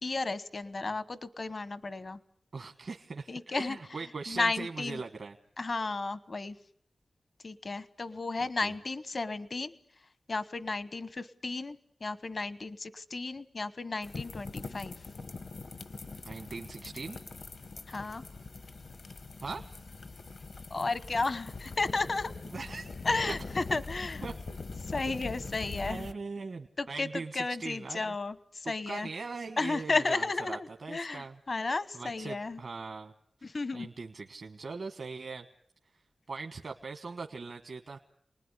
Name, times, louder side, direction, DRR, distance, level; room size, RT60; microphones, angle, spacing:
voice 1, 0.0-2.2 3.3-3.8 4.3-5.0 5.6-6.5 7.4-9.8 10.3-14.9 17.9-18.2 20.7-22.3 23.0-24.2 24.5-24.6 24.9-26.1 26.8-29.1 29.6-32.6 33.4-33.9, left 3 dB, 60° left, 15 dB, 1.0 m, -33 dB
voice 2, 2.5-5.4 8.4-8.7 16.2-17.2 19.4-19.8 22.5-22.9 23.3-23.4 24.2-24.3 25.1-25.2 25.8-28.1 28.6-31.6 31.9-33.1 33.4-35.5 36.3-38.0, right 4 dB, 75° right, 5 dB, 1.3 m, -41 dB
sound 1, 14.0-26.1, left 3 dB, 75° left, 1.5 m, -42 dB
29.0 x 19.5 x 9.8 m, 0.68 s
cardioid pair, 45°, 0 cm